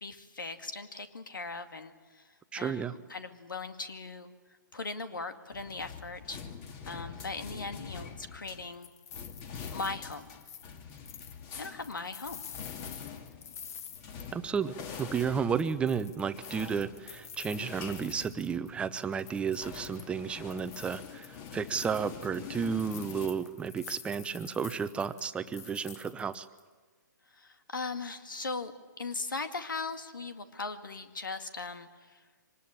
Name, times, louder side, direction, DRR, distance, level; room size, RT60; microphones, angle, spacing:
voice 1, 0.0-2.3 2.5-4.3 4.7-6.4 6.9-8.9 9.7-10.4 11.6-12.4 27.3-32.2, left 3 dB, 85° left, 8 dB, 2.2 m, -39 dB
voice 2, 2.5-2.9 14.3-26.5, right 6 dB, 10° right, 12 dB, 0.8 m, -32 dB
sound 1, 5.5-8.7 9.1-18.9 19.2-23.3, left 6 dB, 30° left, 2.5 m, -45 dB
sound 2, 8.5-14.7 14.9-18.7 19.0-20.1 20.5-26.6, left 8 dB, 50° left, 1.7 m, -49 dB
24.5 x 19.5 x 8.8 m, 1.4 s
hypercardioid pair, 135°, 11 cm